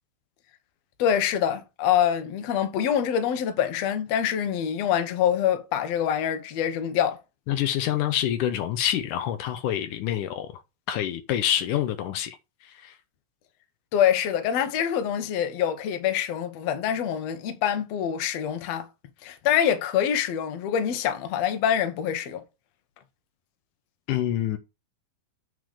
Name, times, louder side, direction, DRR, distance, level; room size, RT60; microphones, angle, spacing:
voice 1, 1.0-7.2 13.9-18.9 19.2-22.4, left 9 dB, 60° left, 2.1 m, -25 dB
voice 2, 7.5-10.5 10.9-12.4 12.8-12.9 24.1-24.6, left 11 dB, 85° left, 2.3 m, -26 dB
7.8 x 4.9 x 4.9 m
omnidirectional pair, 3.6 m